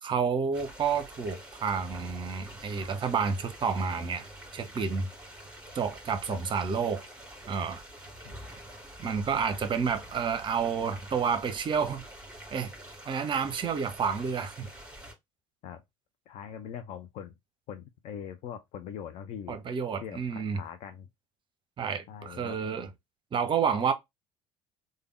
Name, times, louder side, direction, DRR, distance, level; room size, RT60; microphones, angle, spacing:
voice 1, 0.0-4.3 4.5-5.1 5.7-7.0 7.5-7.8 9.0-12.0 12.5-12.7 13.1-14.7 19.5-20.6 21.8-22.9 23.3-23.9, right 6 dB, 30° right, 0.7 m, -30 dB
sound 1, 0.5-15.1, right 1 dB, 5° right, 1.9 m, -47 dB
voice 2, 16.3-17.4 17.7-19.6 20.0-20.2 20.5-21.1 22.1-22.6, left 8 dB, 45° left, 0.5 m, -41 dB
3.4 x 2.2 x 3.1 m
figure-of-eight pair, 60°, 16 cm